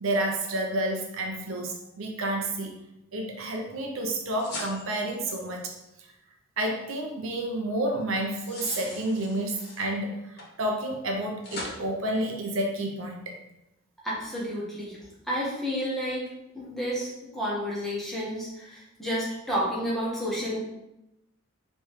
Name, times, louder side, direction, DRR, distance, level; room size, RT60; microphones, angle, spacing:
voice 1, 0.0-2.7 3.1-5.7 6.6-13.3, right 1 dB, 70° right, 2 dB, 0.7 m, -30 dB
sound 1, 4.4-5.4 8.2-9.9 10.4-10.5 11.4-11.8, left 2 dB, 50° left, 1.4 m, -39 dB
voice 2, 14.0-15.0 15.3-16.3 16.5-20.6, equal, ahead, -8 dB, 1.4 m, -30 dB
5.2 x 3.2 x 3.1 m, 0.89 s
head